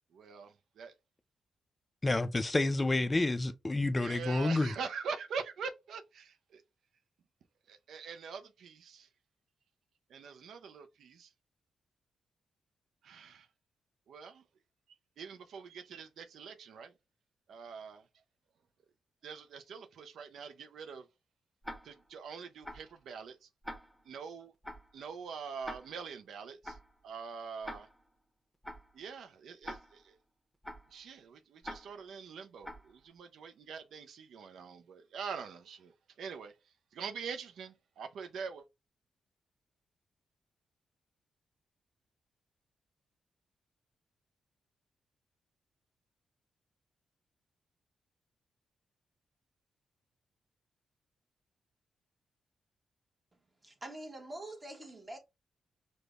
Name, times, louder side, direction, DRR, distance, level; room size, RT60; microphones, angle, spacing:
voice 1, 0.1-0.9 4.0-6.6 7.7-9.1 10.1-11.3 13.0-13.5 14.1-14.4 15.2-16.9 17.5-18.0 19.2-21.1 21.8-23.5 24.1-24.5 24.9-26.8 27.0-27.9 28.9-30.2 30.9-36.5 36.9-38.7, right 6 dB, 80° right, 0.3 m, -44 dB
voice 2, 2.0-4.7, left 2 dB, 25° left, 0.3 m, -29 dB
Tick-tock, 21.6-22.1 22.6-23.0 23.6-24.1 24.6-25.0 25.6-26.1 26.6-27.0 27.6-28.1 28.6-29.0 29.6-30.1 30.6-31.0 31.6-32.1 32.6-33.0, equal, ahead, 0.7 m, -46 dB
voice 3, 53.6-55.2, right 1 dB, 25° right, 1.0 m, -45 dB
4.9 x 2.1 x 2.2 m
cardioid pair, 65°, 0 cm